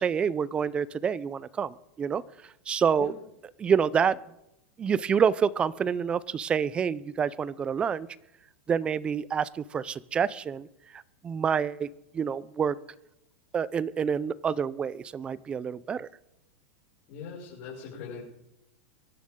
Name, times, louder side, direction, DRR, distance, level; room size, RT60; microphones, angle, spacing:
voice 1, 0.0-2.2 2.7-3.1 3.6-4.2 4.8-8.1 8.7-10.7 11.2-11.9 12.1-12.8 13.5-16.1, right 7 dB, 15° right, 19 dB, 0.4 m, -27 dB
voice 2, 17.1-18.2, left 6 dB, 45° left, -6 dB, 5.7 m, -40 dB
23.5 x 11.5 x 3.7 m, 0.84 s
supercardioid pair, 155°, 7 cm